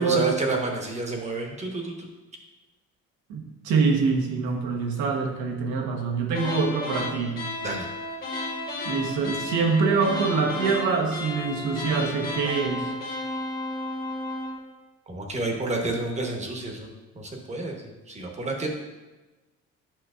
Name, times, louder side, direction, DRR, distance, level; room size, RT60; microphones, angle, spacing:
voice 1, 0.0-2.1 7.6-7.9 15.1-16.9 17.1-18.7, right 2 dB, 25° right, 2 dB, 1.1 m, -29 dB
voice 2, 3.3-7.4 8.8-12.9, right 4 dB, 85° right, 2 dB, 1.2 m, -25 dB
sound 1, 6.3-14.6, left 2 dB, 30° left, 1.6 m, -33 dB
8.8 x 5.6 x 2.5 m, 1.1 s
cardioid pair, 125°, 30 cm